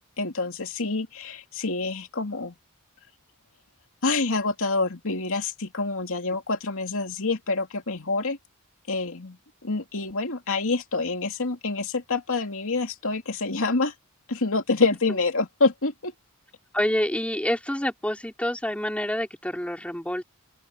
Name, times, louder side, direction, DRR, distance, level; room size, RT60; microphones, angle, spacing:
voice 1, 0.2-2.5 4.0-8.4 8.9-13.9 14.3-16.1, left 3 dB, 65° left, 2.7 m, -27 dB
voice 2, 16.7-20.2, left 1 dB, 5° left, 3.6 m, -27 dB
open air
head